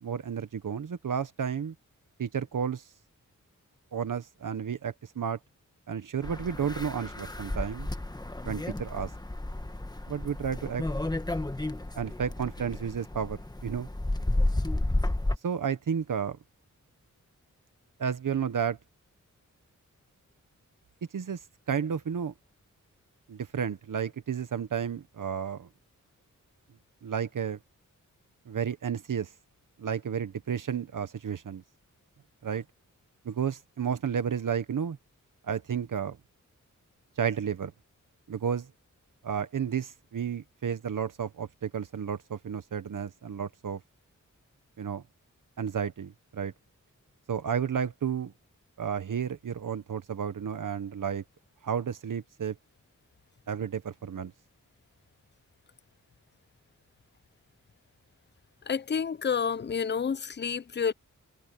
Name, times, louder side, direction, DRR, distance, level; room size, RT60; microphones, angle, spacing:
voice 1, 0.0-1.7 2.2-2.8 3.9-5.4 5.9-7.9 8.4-9.1 10.1-10.8 12.0-13.9 15.4-16.4 18.0-18.8 21.1-21.4 21.7-22.3 23.3-25.7 27.0-27.6 28.5-29.3 29.8-31.6 32.4-32.6 33.2-35.0 35.4-36.2 37.2-37.7 38.3-38.7 39.2-43.8 44.8-45.0 45.6-46.5 47.3-48.3 48.8-51.2 51.6-52.6 53.5-54.3, right 7 dB, 80° right, 1.2 m, -32 dB
sound 1, 6.2-15.4, left 1 dB, 15° left, 1.2 m, -32 dB
voice 2, 58.7-60.9, left 6 dB, 35° left, 0.5 m, -29 dB
wide cardioid pair, 130°, 32 cm